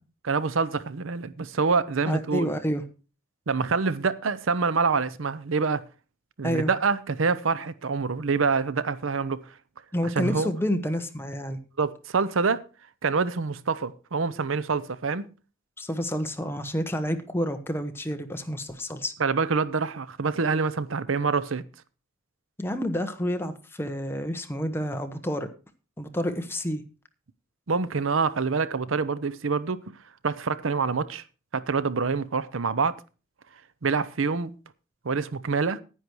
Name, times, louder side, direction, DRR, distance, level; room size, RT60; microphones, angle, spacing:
voice 1, 0.2-2.5 3.5-5.8 6.4-9.4 10.2-10.5 11.8-12.6 13.0-15.2 19.2-21.6 27.7-29.8 30.2-31.2 31.5-32.9 33.8-34.5 35.0-35.8, right 4 dB, 75° right, 0.7 m, -26 dB
voice 2, 2.0-2.8 6.4-6.7 9.9-11.6 15.8-19.1 22.6-25.5 26.0-26.8, equal, 10° left, 1.1 m, -29 dB
10.0 x 9.7 x 4.6 m
head